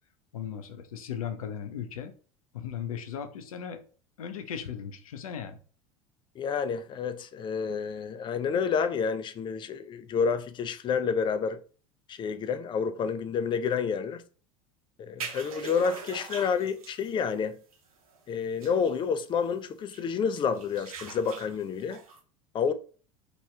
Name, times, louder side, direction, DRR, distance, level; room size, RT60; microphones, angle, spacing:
voice 1, 0.3-2.1 2.5-3.8 4.2-5.6, left 8 dB, 80° left, 0.5 m, -37 dB
voice 2, 6.4-11.6 12.1-14.2 15.0-17.6 18.3-22.0 22.5-22.7, left 6 dB, 25° left, 0.3 m, -29 dB
sound 1, 15.2-17.1 17.5-17.8 18.1-18.2 18.6-19.0 19.9-20.0 20.4-22.2, right 5 dB, 80° right, 0.6 m, -42 dB
3.0 x 2.2 x 3.2 m
hypercardioid pair, 80°, 18 cm